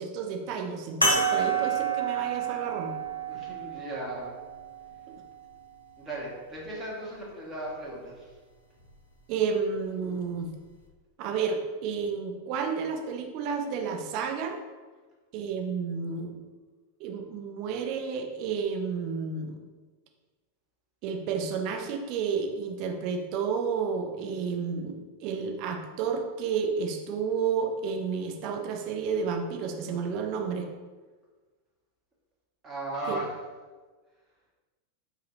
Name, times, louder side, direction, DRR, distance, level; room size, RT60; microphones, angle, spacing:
voice 1, 0.0-2.9 9.3-10.5 11.2-14.6 15.3-16.3 17.0-19.6 21.0-30.7 33.1-33.2, right 6 dB, 40° right, 3 dB, 0.6 m, -31 dB
sound 1, 1.0-5.8 6.6-6.7 8.8-9.0, right 4 dB, 85° left, 0.7 m, -29 dB
voice 2, 3.3-4.4 6.0-8.3 32.6-33.3, right 1 dB, 20° right, -4 dB, 1.2 m, -36 dB
4.1 x 2.5 x 4.0 m, 1.3 s
figure-of-eight pair, 90°, 0 cm